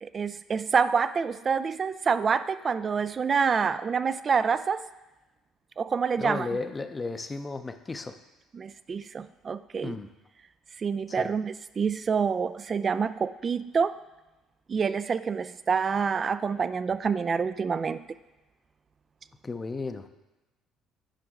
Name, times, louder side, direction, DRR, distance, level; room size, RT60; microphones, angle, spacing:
voice 1, 0.0-4.9 5.8-6.6 8.5-10.0 10.8-14.0 14.7-18.0, right 6 dB, 40° right, 14 dB, 0.4 m, -27 dB
voice 2, 6.2-8.2 9.8-10.1 11.1-11.3 19.4-20.1, left 3 dB, 25° left, 9 dB, 0.6 m, -34 dB
9.0 x 5.1 x 3.7 m, 1.0 s
hypercardioid pair, 60°, 0 cm